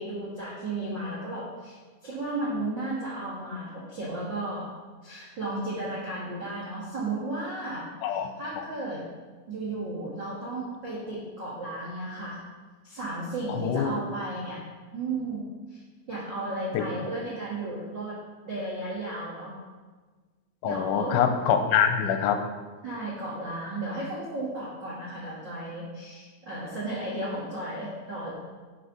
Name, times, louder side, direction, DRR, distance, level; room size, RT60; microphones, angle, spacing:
voice 1, 0.0-4.7 5.0-9.0 9.5-12.4 12.8-14.6 14.9-15.4 15.7-15.8 16.1-18.1 18.4-19.5 20.6-21.2 22.8-28.3, right 2 dB, 75° right, -7 dB, 1.0 m, -34 dB
voice 2, 13.5-13.9 16.7-16.8 20.6-22.4, left 8 dB, 90° left, 6 dB, 3.1 m, -24 dB
11.0 x 6.5 x 4.0 m, 1.4 s
omnidirectional pair, 5.4 m